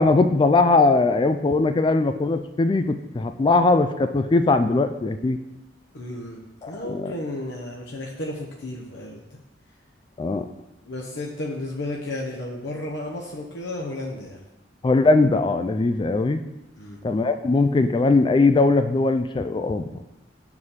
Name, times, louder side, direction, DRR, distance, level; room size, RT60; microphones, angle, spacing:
voice 1, 0.0-5.4 6.6-7.1 10.2-10.5 14.8-16.4 17.0-19.8, left 3 dB, 25° left, 9 dB, 0.3 m, -20 dB
voice 2, 5.9-6.4 6.7-9.2 10.8-14.4 16.8-17.0, left 1 dB, 70° left, -2 dB, 0.9 m, -33 dB
6.5 x 4.8 x 5.6 m, 0.95 s
head